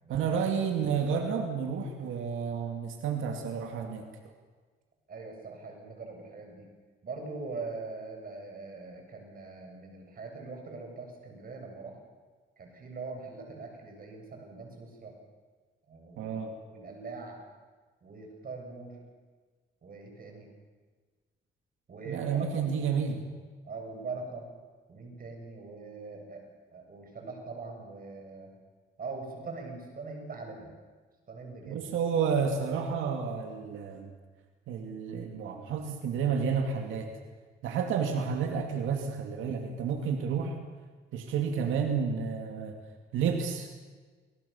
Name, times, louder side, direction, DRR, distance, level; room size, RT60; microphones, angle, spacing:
voice 1, 0.1-4.1 16.2-16.5 22.1-23.3 31.7-34.1 34.7-37.1 37.6-40.6 41.1-42.8 43.1-43.7, right 6 dB, 85° right, 4 dB, 2.5 m, -30 dB
voice 2, 5.1-6.7 7.0-11.9 12.6-15.1 15.9-16.4 16.7-17.4 18.0-19.0 19.8-20.5 21.9-22.7 23.6-24.5 24.9-26.4 26.7-28.5 29.0-30.7 31.3-31.9, right 3 dB, 45° right, 2 dB, 8.0 m, -42 dB
29.5 x 19.0 x 7.2 m, 1.4 s
cardioid pair, 90°, 20 cm